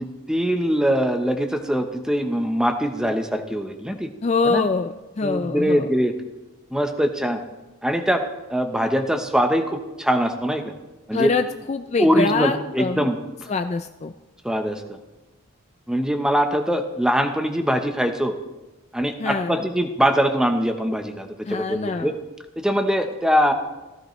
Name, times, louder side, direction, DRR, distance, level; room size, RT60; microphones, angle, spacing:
voice 1, 0.0-4.1 4.4-4.6 5.2-6.2 6.7-7.4 7.8-8.2 8.5-10.6 11.1-11.3 12.0-13.2 14.4-14.8 15.9-18.3 18.9-22.1 22.6-23.5, equal, 5° right, 6 dB, 0.8 m, -22 dB
voice 2, 4.2-5.9 11.1-13.1 13.5-14.1 19.2-19.6 21.5-22.1, left 4 dB, 30° left, 8 dB, 0.3 m, -24 dB
15.5 x 15.0 x 3.1 m, 1.1 s
head